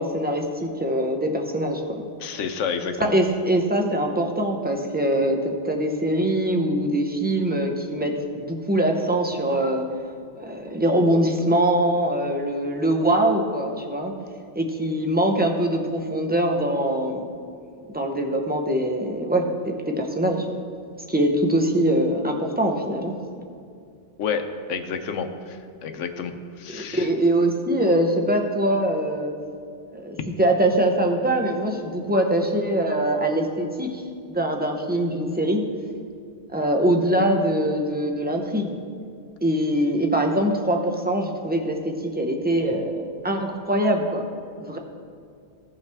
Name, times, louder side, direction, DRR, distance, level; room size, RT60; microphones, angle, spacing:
voice 1, 0.0-2.0 3.0-9.8 10.4-14.1 14.5-17.2 17.9-20.4 21.1-23.1 26.7-29.3 29.9-34.0 34.3-35.6 36.5-38.7 39.4-44.2 44.6-44.8, right 1 dB, 10° right, 2 dB, 0.6 m, -23 dB
voice 2, 2.2-3.2 24.2-27.1, left 6 dB, 85° left, 7 dB, 1.1 m, -30 dB
16.0 x 5.6 x 3.5 m, 2.3 s
omnidirectional pair, 1.2 m